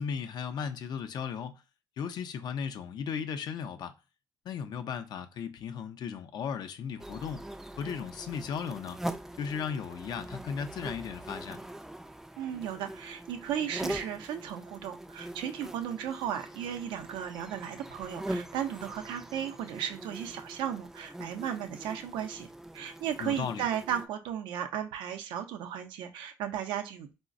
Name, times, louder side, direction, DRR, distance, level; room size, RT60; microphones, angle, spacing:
voice 1, 0.0-1.5 2.0-3.9 4.5-7.5 7.8-9.0 9.4-11.6 23.2-23.6, left 7 dB, 60° left, 0.5 m, -36 dB
sound 1, 7.0-24.1, right 1 dB, 5° right, 0.3 m, -42 dB
voice 2, 12.4-22.5 22.7-27.1, right 9 dB, 80° right, 0.5 m, -35 dB
3.8 x 2.0 x 2.5 m
supercardioid pair, 75°, 8 cm